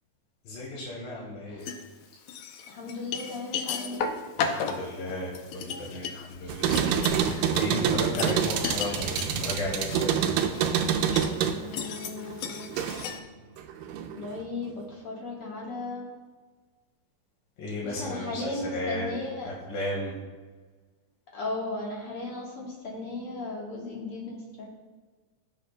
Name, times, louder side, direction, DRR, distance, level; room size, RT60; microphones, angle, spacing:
voice 1, 0.4-1.6 4.4-10.3 17.6-19.1 19.4-20.1, left 1 dB, 90° left, -4 dB, 3.4 m, -34 dB
sound 1, 1.6-1.8 2.3-13.2, left 6 dB, 75° left, 1.9 m, -35 dB
voice 2, 2.7-4.1 11.6-12.7 14.1-16.1 17.8-19.5 21.3-24.7, left 2 dB, 50° left, -3 dB, 2.0 m, -36 dB
sound 2, 6.5-13.2 13.6-14.4, right 8 dB, 90° right, 2.3 m, -27 dB
16.0 x 7.6 x 2.2 m, 1.4 s
omnidirectional pair, 3.9 m